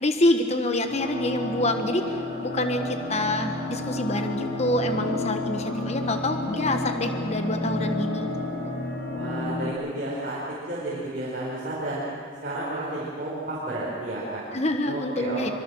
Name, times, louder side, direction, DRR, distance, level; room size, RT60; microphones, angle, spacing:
voice 1, 0.0-8.3 14.5-15.5, left 1 dB, 35° left, 6 dB, 1.3 m, -26 dB
sound 1, 0.9-9.7, left 2 dB, 65° left, 6.2 m, -31 dB
voice 2, 9.1-12.0 12.4-14.4 14.8-15.5, right 1 dB, 45° right, -7 dB, 5.1 m, -32 dB
25.0 x 24.5 x 6.4 m, 2.1 s
head